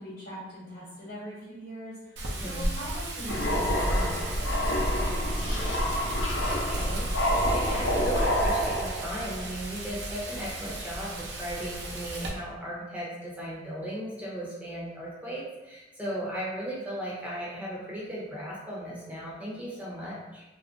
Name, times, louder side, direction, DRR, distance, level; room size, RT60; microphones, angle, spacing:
voice 1, 0.0-5.9, equal, 50° left, -10 dB, 1.0 m, -42 dB
Wind, 2.2-12.3, right 1 dB, 90° right, 0.6 m, -35 dB
sound 1, 3.3-9.3, equal, 85° left, 0.6 m, -27 dB
voice 2, 6.4-20.4, equal, 10° right, -7 dB, 0.8 m, -36 dB
2.4 x 2.1 x 3.6 m, 1.0 s
head